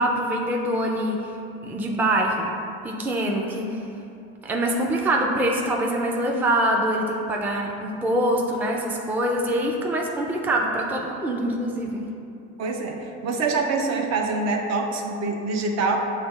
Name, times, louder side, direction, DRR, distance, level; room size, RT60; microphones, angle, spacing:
voice 1, 0.0-1.3 1.6-2.5 2.8-3.8 4.4-12.1, right 1 dB, 5° right, 0 dB, 0.4 m, -24 dB
voice 2, 12.6-16.0, right 3 dB, 55° right, 3 dB, 0.6 m, -25 dB
7.0 x 3.2 x 2.4 m, 2.7 s
supercardioid pair, 90°, 32 cm